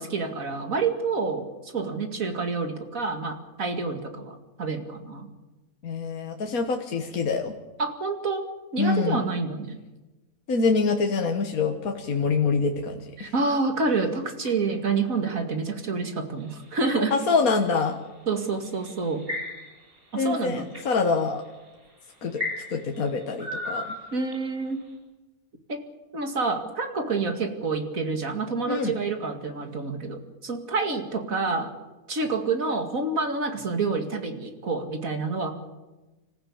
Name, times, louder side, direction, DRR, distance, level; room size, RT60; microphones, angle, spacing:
voice 1, 0.0-5.3 7.8-9.8 13.2-17.2 18.3-19.3 20.1-20.7 24.1-24.9 25.7-25.8 26.1-31.7 32.1-35.5, right 4 dB, 65° right, 6 dB, 2.6 m, -28 dB
voice 2, 5.8-7.5 8.8-9.2 10.5-13.3 16.8-18.0 20.1-21.4 22.2-22.4 22.7-23.9 28.7-28.9, left 4 dB, 70° left, 4 dB, 1.8 m, -25 dB
sound 1, 16.4-17.7 18.6-19.9 20.3-20.8 21.5-21.7 22.4-24.6, left 2 dB, 40° right, 6.8 m, -34 dB
26.0 x 14.5 x 8.7 m, 1.1 s
omnidirectional pair, 1.6 m